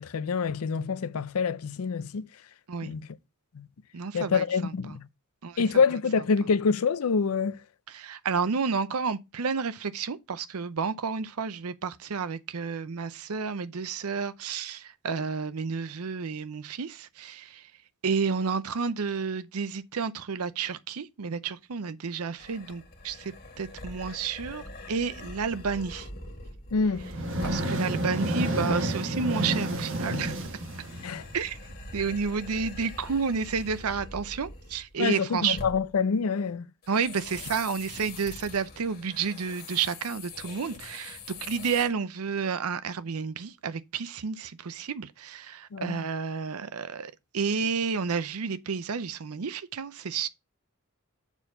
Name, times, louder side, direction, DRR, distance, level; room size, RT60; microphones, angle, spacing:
voice 1, 0.0-2.2 2.8-3.0 3.5-3.7 4.1-5.0 5.6-7.6 26.7-27.1 31.0-31.3 35.0-36.7 45.7-46.0, left 5 dB, 75° left, 0.5 m, -26 dB
voice 2, 3.9-5.0 5.4-5.6 7.9-17.7 18.0-26.1 27.4-30.4 31.3-31.6 31.9-35.6 36.9-50.3, right 5 dB, 80° right, 0.6 m, -31 dB
sound 1, 22.4-27.8 28.7-35.0 35.4-35.9 36.8-41.9, left 2 dB, 45° left, 2.3 m, -44 dB
sound 2, 27.0-31.5, right 1 dB, 60° right, 1.3 m, -30 dB
7.1 x 4.5 x 5.4 m
head